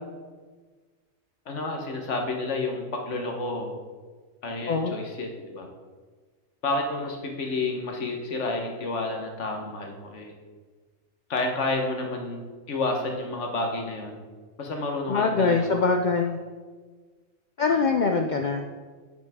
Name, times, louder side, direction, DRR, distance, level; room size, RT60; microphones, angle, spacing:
voice 1, 1.5-3.7 4.4-5.7 6.6-10.3 11.3-14.2 14.6-15.9, left 2 dB, 60° left, 2 dB, 1.4 m, -30 dB
voice 2, 15.1-16.4 17.6-18.7, left 4 dB, 75° left, 4 dB, 0.4 m, -23 dB
8.6 x 8.1 x 3.6 m, 1.4 s
omnidirectional pair, 1.4 m